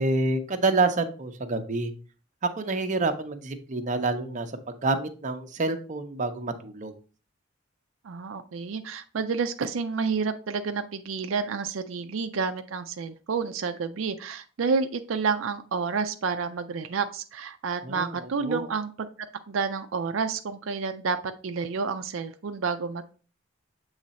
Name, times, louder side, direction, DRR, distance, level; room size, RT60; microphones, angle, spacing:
voice 1, 0.0-1.9 2.6-6.9 17.8-18.7, right 3 dB, 40° right, 7 dB, 0.6 m, -28 dB
voice 2, 8.0-19.1 19.5-21.2 21.4-23.1, right 5 dB, 80° right, 8 dB, 0.4 m, -29 dB
7.4 x 3.2 x 4.0 m, 0.37 s
head